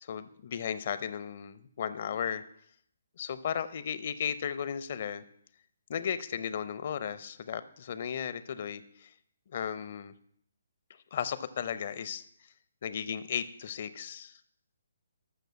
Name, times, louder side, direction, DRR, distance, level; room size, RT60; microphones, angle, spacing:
voice 1, 0.0-2.4 3.2-5.2 5.9-9.1 9.5-10.1 11.1-12.2 12.8-14.4, left 8 dB, 45° left, 13 dB, 0.7 m, -35 dB
12.5 x 6.7 x 5.8 m, 0.67 s
figure-of-eight pair, 135°, 0 cm